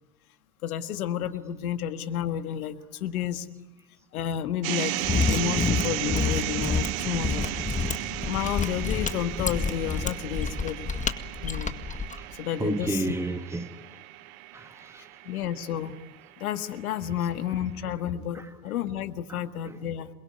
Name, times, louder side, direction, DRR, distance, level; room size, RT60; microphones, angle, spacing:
voice 1, 0.6-3.5 4.1-7.8 8.2-10.9 11.4-11.7 12.4-13.1 15.2-16.0 16.4-20.1, left 10 dB, 80° left, 1.8 m, -31 dB
sound 1, 4.6-16.8, right 18 dB, 70° right, 1.1 m, -34 dB
Mechanisms, 5.0-12.2, left 4 dB, 15° left, 2.0 m, -28 dB
voice 2, 12.5-13.7 14.5-15.1 17.2-17.3 18.3-18.5 19.3-19.8, right 2 dB, 5° right, 2.1 m, -32 dB
28.5 x 22.0 x 9.5 m
hypercardioid pair, 80°, 43 cm